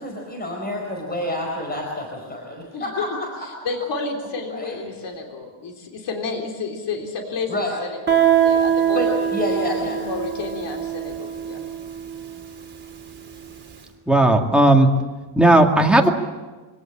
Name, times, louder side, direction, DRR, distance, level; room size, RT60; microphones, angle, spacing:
voice 1, 0.0-3.7 4.5-4.8 7.5-7.8 8.9-10.0 11.5-11.7, left 1 dB, 20° left, 1 dB, 4.8 m, -29 dB
voice 2, 2.7-3.2 3.6-9.2 10.0-11.7, left 4 dB, 65° left, 2 dB, 3.8 m, -31 dB
Guitar, 8.1-13.5, right 9 dB, 25° right, 4.1 m, -23 dB
voice 3, 14.1-14.9 15.4-16.1, right 1 dB, ahead, 1 dB, 2.1 m, -14 dB
25.0 x 18.0 x 8.7 m, 1.3 s
cardioid pair, 140°, 45 cm